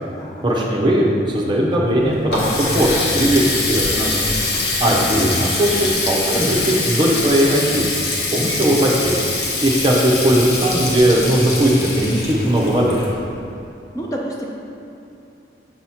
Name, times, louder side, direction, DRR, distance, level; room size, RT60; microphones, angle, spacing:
voice 1, 0.4-3.4 3.7-4.2 4.8-7.9 8.3-9.2 9.6-12.9, right 1 dB, 25° right, -3 dB, 0.7 m, -18 dB
Water tap faucet, 1.9-13.5, left 2 dB, 55° left, 1.0 m, -24 dB
voice 2, 4.5-5.2 13.9-14.5, equal, 20° left, -2 dB, 0.5 m, -31 dB
6.9 x 3.0 x 5.6 m, 2.7 s
head